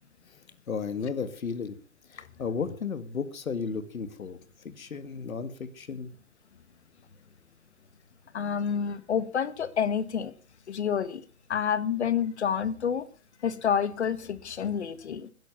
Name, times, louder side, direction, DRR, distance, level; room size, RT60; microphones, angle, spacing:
voice 1, 0.7-1.8 2.1-4.4 4.6-6.1, left 5 dB, 80° left, 11 dB, 2.1 m, -34 dB
voice 2, 8.3-10.3 10.7-11.2 11.5-13.1 13.4-15.3, left 7 dB, 55° left, 15 dB, 1.6 m, -28 dB
13.0 x 10.5 x 6.9 m, 0.38 s
hypercardioid pair, 160°, 41 cm